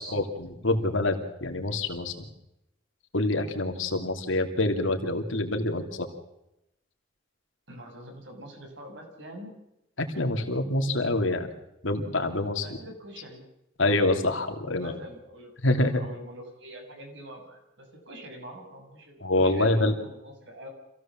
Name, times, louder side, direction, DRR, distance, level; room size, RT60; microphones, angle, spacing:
voice 1, 0.0-2.1 3.1-6.1 10.0-11.5 11.8-12.7 13.8-14.9 15.6-16.0 19.2-19.9, left 2 dB, 80° left, 5 dB, 3.0 m, -26 dB
voice 2, 7.7-9.5 12.6-13.5 14.8-20.7, equal, 65° right, 3 dB, 6.6 m, -45 dB
26.5 x 16.5 x 7.5 m, 0.87 s
head